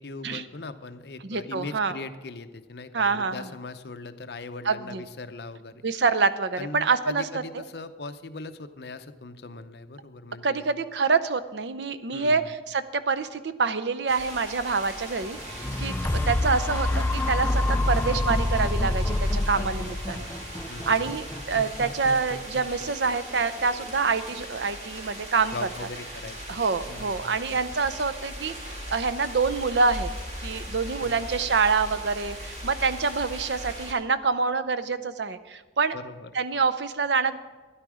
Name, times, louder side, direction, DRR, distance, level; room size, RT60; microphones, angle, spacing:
voice 1, 0.0-5.8 6.6-10.7 12.1-12.6 19.5-19.7 20.1-20.4 20.7-21.1 25.5-26.6 26.9-27.6 31.0-31.2 35.9-36.3, left 3 dB, 60° left, 10 dB, 0.7 m, -40 dB
voice 2, 1.2-2.0 2.9-3.5 4.7-5.0 5.8-7.3 7.5-7.6 10.4-20.3 20.9-25.5 26.5-30.1 30.4-35.9 36.3-37.4, right 4 dB, 70° right, 11 dB, 0.6 m, -26 dB
sound 1, 14.1-33.9, equal, 40° right, 2.5 m, -39 dB
sound 2, 15.2-23.3 23.9-24.0, left 1 dB, 10° left, 0.3 m, -27 dB
13.0 x 10.5 x 4.9 m, 1.3 s
head